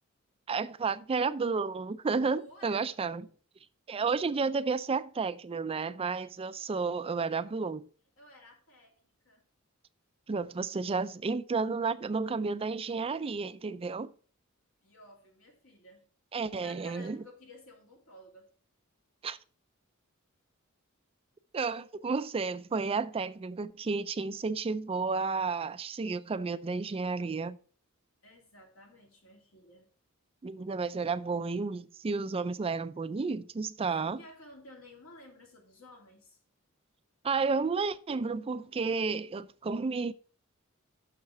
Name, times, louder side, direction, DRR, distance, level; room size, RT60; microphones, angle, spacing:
voice 1, 0.5-3.3 3.9-7.9 10.3-14.1 16.3-17.2 19.2-19.4 21.5-27.6 30.4-34.2 37.2-40.1, right 4 dB, 25° right, 0.4 m, -32 dB
voice 2, 2.4-3.3 8.2-9.4 14.8-16.1 16.4-18.5 28.2-29.9 33.9-36.4, left 1 dB, 70° left, 2.8 m, -54 dB
6.6 x 6.3 x 5.5 m
head